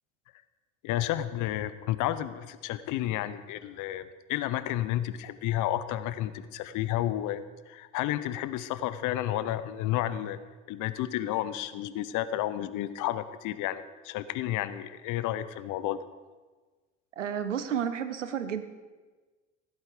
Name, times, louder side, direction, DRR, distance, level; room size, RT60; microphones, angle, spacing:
voice 1, 0.8-10.4 10.7-16.0, left 13 dB, 60° left, 14 dB, 0.8 m, -31 dB
voice 2, 17.2-18.6, right 8 dB, 90° right, 12 dB, 0.7 m, -31 dB
15.5 x 8.2 x 5.0 m, 1.3 s
hypercardioid pair, 60°, 36 cm